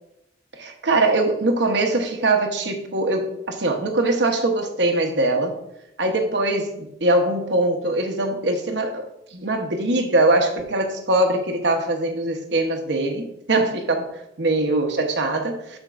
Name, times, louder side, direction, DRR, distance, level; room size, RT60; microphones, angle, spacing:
voice 1, 0.5-5.6 6.0-9.1 9.3-14.1 14.4-15.8, right 2 dB, 70° right, 4 dB, 1.0 m, -22 dB
12.0 x 4.5 x 2.5 m, 0.85 s
head